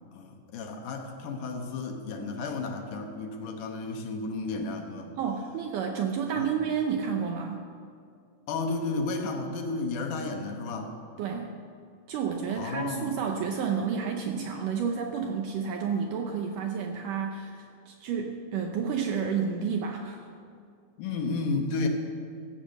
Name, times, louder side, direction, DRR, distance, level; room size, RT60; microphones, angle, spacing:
voice 1, 0.1-5.1 6.4-6.5 8.5-10.9 12.5-13.1 21.0-21.9, left 3 dB, 65° left, 3 dB, 2.3 m, -32 dB
voice 2, 5.2-7.7 11.2-11.6 12.1-20.3, right 6 dB, 85° right, 3 dB, 1.8 m, -30 dB
16.0 x 8.4 x 6.5 m, 2.4 s
omnidirectional pair, 4.7 m